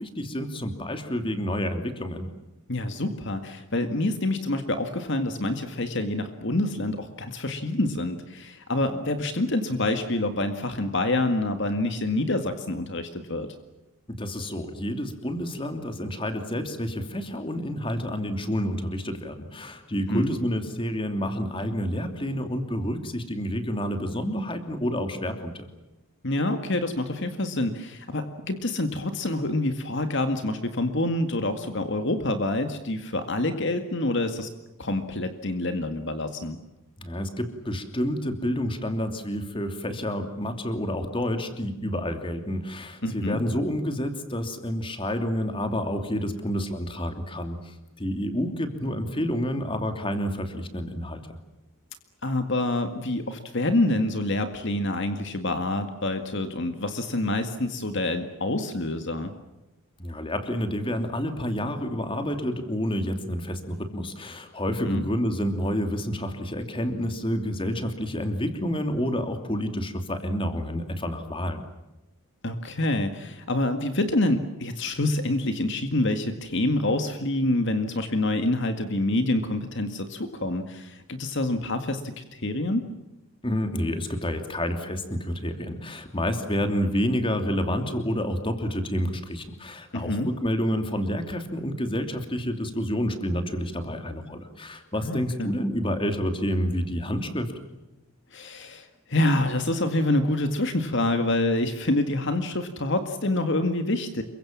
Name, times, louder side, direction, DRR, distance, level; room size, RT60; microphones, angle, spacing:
voice 1, 0.0-2.3 14.1-25.6 37.0-51.4 60.0-71.6 83.4-97.5, equal, 25° left, 7 dB, 2.9 m, -29 dB
voice 2, 2.7-13.5 20.1-20.3 26.2-34.5 34.8-36.6 43.0-43.4 52.2-59.3 64.9-65.0 72.4-82.8 89.9-90.3 95.0-95.6 98.3-104.2, left 1 dB, 55° left, 8 dB, 2.0 m, -27 dB
28.5 x 24.0 x 7.4 m, 0.96 s
head